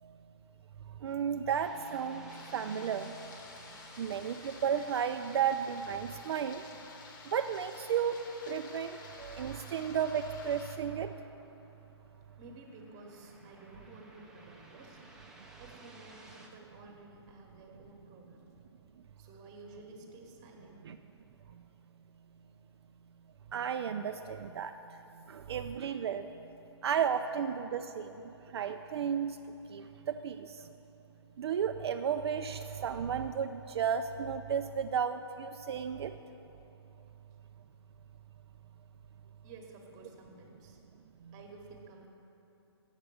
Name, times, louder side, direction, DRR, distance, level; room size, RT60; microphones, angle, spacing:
voice 1, 1.0-3.3 4.0-6.6 7.3-8.2 8.5-11.1 20.8-21.0 23.5-24.7 25.3-26.3 26.8-29.4 29.7-30.7 31.4-36.1 41.2-41.3, right 8 dB, 70° right, 7 dB, 0.4 m, -33 dB
sound 1, 1.5-16.5, right 1 dB, 5° right, 0.6 m, -58 dB
sound 2, 2.3-10.8, left 4 dB, 50° left, 1.0 m, -52 dB
voice 2, 12.4-15.0 15.6-18.5 19.2-20.9 39.4-40.8 41.3-42.1, right 2 dB, 25° right, 2 dB, 1.1 m, -52 dB
7.9 x 6.6 x 7.6 m, 3.0 s
hypercardioid pair, 150°, 14 cm